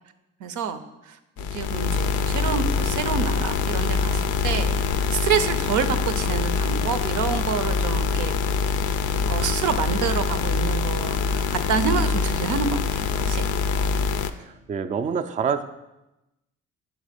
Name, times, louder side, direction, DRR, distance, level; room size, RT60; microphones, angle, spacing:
voice 1, 0.4-0.8 1.1-1.2 1.5-4.7 5.1-8.3 9.3-13.4, right 7 dB, 80° right, 9 dB, 0.6 m, -27 dB
sound 1, 1.4-14.3, left 5 dB, 75° left, 0.5 m, -24 dB
voice 2, 14.4-15.6, right 6 dB, 25° right, 8 dB, 0.3 m, -27 dB
6.1 x 4.1 x 5.0 m, 0.95 s
cardioid pair, 90°, 30 cm